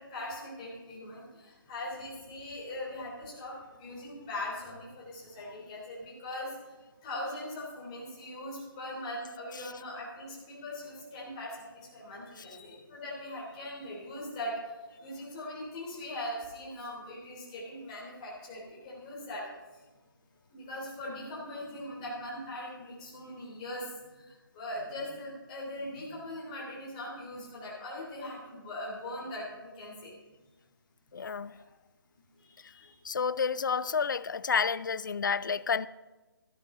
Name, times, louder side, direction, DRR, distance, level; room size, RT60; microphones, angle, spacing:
voice 1, 0.0-19.4 19.7-19.8 20.5-30.1 31.5-31.6 32.4-33.0, left 1 dB, 20° left, -6 dB, 3.4 m, -41 dB
voice 2, 31.1-31.5 33.0-35.9, left 6 dB, 60° left, 18 dB, 0.4 m, -30 dB
13.5 x 11.5 x 3.8 m, 1.2 s
hypercardioid pair, 175°, 12 cm